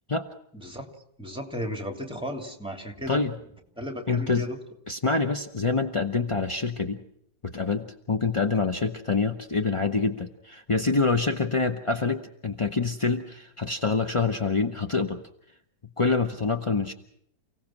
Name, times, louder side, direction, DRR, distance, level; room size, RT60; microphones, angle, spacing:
voice 1, 0.5-0.9 1.2-3.2 3.8-4.6, equal, 5° right, 4 dB, 2.9 m, -34 dB
voice 2, 4.1-4.5 4.9-7.0 7.4-15.2 16.0-16.9, left 4 dB, 30° left, 6 dB, 0.6 m, -26 dB
29.5 x 17.5 x 6.0 m, 0.73 s
omnidirectional pair, 1.9 m